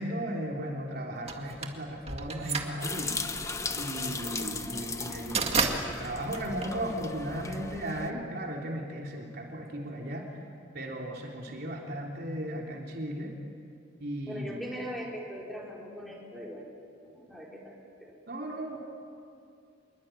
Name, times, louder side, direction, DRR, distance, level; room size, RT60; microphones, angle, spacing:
voice 1, 0.0-3.1 3.8-10.3 10.7-13.3 14.0-14.6 18.3-18.8, right 1 dB, 55° right, 0 dB, 3.5 m, -36 dB
sound 1, 1.3-7.4, right 4 dB, 30° right, 2.1 m, -33 dB
sound 2, 2.8-8.1, left 3 dB, 15° left, 1.1 m, -37 dB
voice 2, 2.9-3.4 14.3-16.7 17.0-18.2, equal, ahead, -3 dB, 4.9 m, -41 dB
27.0 x 22.5 x 9.2 m, 2.4 s
head